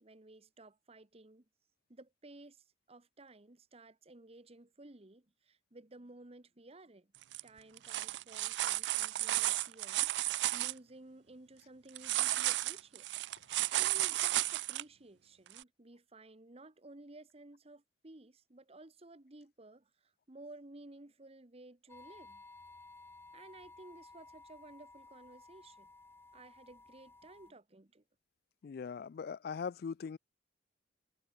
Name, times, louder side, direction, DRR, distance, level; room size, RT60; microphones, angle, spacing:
voice 1, 0.0-1.5 1.9-7.1 7.4-13.1 13.4-22.4 23.3-25.9 26.3-28.0, right 2 dB, 35° right, 1.2 m, -55 dB
sound 1, 7.2-7.4 7.8-10.7 12.0-14.8 15.6-15.7, right 16 dB, 70° right, 0.4 m, -33 dB
sound 2, 21.9-27.5, left 3 dB, 15° left, 0.9 m, -56 dB
voice 2, 28.6-30.2, left 6 dB, 60° left, 0.3 m, -40 dB
head